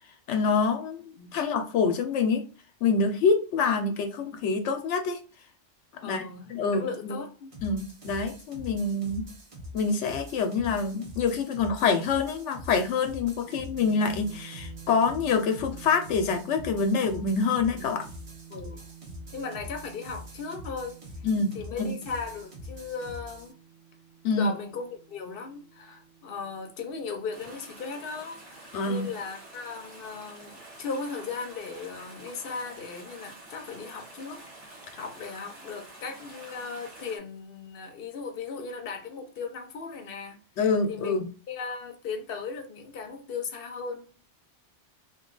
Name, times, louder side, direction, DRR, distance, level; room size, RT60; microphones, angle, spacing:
voice 1, 0.3-2.4 2.8-5.2 6.0-7.2 7.6-9.3 9.7-18.0 21.2-21.9 24.2-24.5 28.7-29.1 40.6-41.3, left 4 dB, 90° left, 0.9 m, -26 dB
voice 2, 1.2-1.5 6.0-7.5 13.4-13.6 18.5-18.8 19.3-21.0 21.5-23.5 24.3-34.4 34.9-40.4 40.9-41.2 41.5-44.1, left 5 dB, 60° left, 0.8 m, -37 dB
sound 1, 7.5-23.5, left 1 dB, 35° right, 0.7 m, -44 dB
sound 2, 13.7-29.6, right 10 dB, 60° right, 1.0 m, -50 dB
sound 3, 27.3-37.2, right 2 dB, 85° right, 1.7 m, -48 dB
2.9 x 2.2 x 3.7 m
omnidirectional pair, 1.2 m